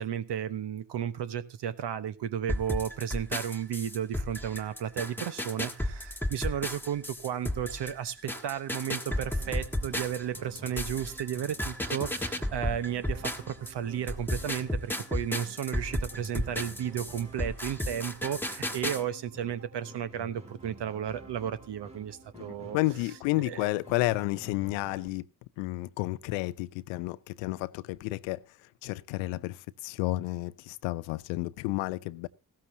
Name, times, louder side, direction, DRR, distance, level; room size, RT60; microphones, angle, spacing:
voice 1, 0.0-22.8 23.4-23.7, right 9 dB, 60° right, 1.2 m, -34 dB
sound 1, 2.5-13.7 14.1-19.0, left 1 dB, 5° left, 1.5 m, -33 dB
sound 2, 9.1-25.1, right 1 dB, 15° right, 2.3 m, -50 dB
voice 2, 22.7-25.2 25.6-28.4 28.8-29.6 29.8-32.3, left 19 dB, 85° left, 0.6 m, -31 dB
15.5 x 13.0 x 2.8 m
hypercardioid pair, 45°, 46 cm